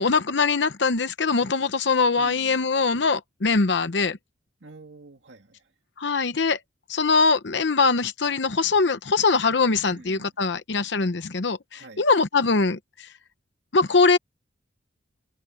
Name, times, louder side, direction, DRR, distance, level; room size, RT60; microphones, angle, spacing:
voice 1, 0.0-4.2 6.0-6.6 6.9-13.1 13.7-14.2, left 4 dB, 65° left, 0.8 m, -22 dB
voice 2, 2.2-2.8 4.6-5.7 9.9-10.3 11.7-12.0, right 2 dB, 70° right, 2.1 m, -48 dB
head